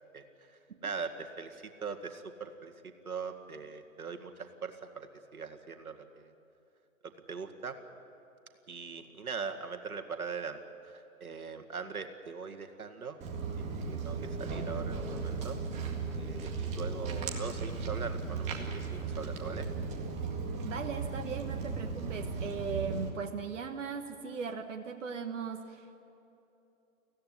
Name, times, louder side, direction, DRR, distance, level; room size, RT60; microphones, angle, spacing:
voice 1, 0.1-6.3 7.0-7.8 8.7-13.2 13.6-15.6 16.2-19.7, right 5 dB, 80° right, 7 dB, 2.2 m, -41 dB
Walk footsteps, 13.2-23.1, right 4 dB, 15° right, 2.0 m, -36 dB
voice 2, 20.6-26.0, right 5 dB, 60° right, 4 dB, 1.5 m, -38 dB
24.5 x 16.0 x 9.9 m, 2.9 s
hypercardioid pair, 140°, 43 cm